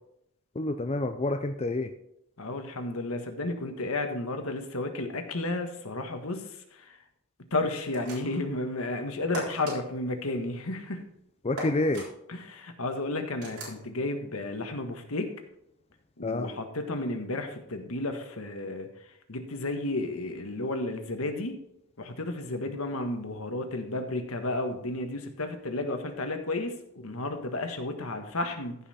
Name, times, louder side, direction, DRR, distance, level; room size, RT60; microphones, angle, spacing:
voice 1, 0.5-1.9 11.4-12.1 16.2-16.5, left 2 dB, 30° left, 6 dB, 0.6 m, -28 dB
voice 2, 2.4-7.0 7.5-11.0 12.3-15.3 16.2-18.9 19.3-21.6 22.0-28.8, left 2 dB, 70° left, 6 dB, 1.5 m, -32 dB
sound 1, 7.9-8.5 9.3-9.8 11.6-12.1 13.4-13.8, right 1 dB, 85° right, 3.9 m, -38 dB
15.0 x 5.7 x 4.3 m, 0.78 s
head